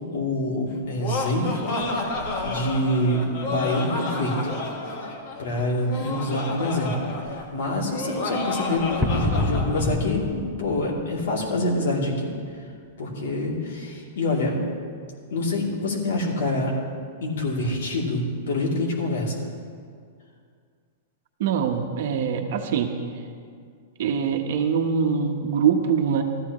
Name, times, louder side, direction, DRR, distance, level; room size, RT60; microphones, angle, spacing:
voice 1, 0.1-4.3 5.4-12.3 13.0-14.6 15.3-16.7 17.2-19.4, left 1 dB, 75° left, -3 dB, 2.9 m, -26 dB
Laughter, 0.7-9.9, left 3 dB, 40° left, 1.5 m, -31 dB
sound 1, 9.0-11.7, left 1 dB, 5° left, 0.8 m, -27 dB
voice 2, 21.4-22.9 24.0-26.2, right 7 dB, 60° right, 4 dB, 1.1 m, -23 dB
17.0 x 13.5 x 3.1 m, 2.2 s
supercardioid pair, 165°, 0 cm